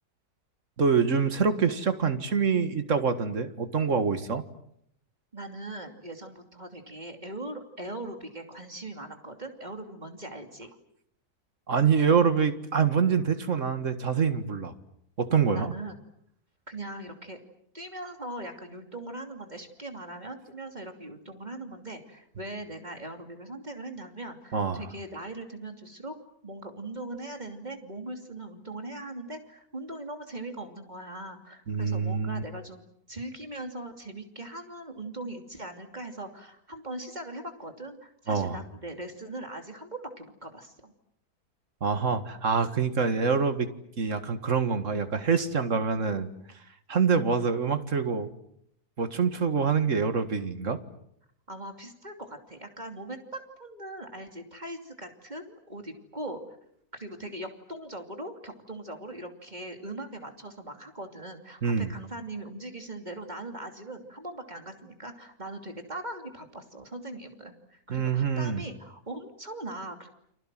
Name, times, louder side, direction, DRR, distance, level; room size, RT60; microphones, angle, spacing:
voice 1, 0.8-4.4 11.7-14.7 15.2-15.7 24.5-24.8 31.7-32.4 38.3-38.6 41.8-43.7 44.0-46.3 46.9-48.3 49.0-50.8 61.6-61.9 67.9-68.6, right 5 dB, 50° right, 9 dB, 2.1 m, -25 dB
voice 2, 5.3-10.7 15.5-16.0 16.7-17.4 17.7-26.2 26.4-40.9 51.5-56.4 56.9-70.1, right 1 dB, 25° right, 5 dB, 3.0 m, -40 dB
29.5 x 25.5 x 7.6 m, 0.73 s
omnidirectional pair, 1.7 m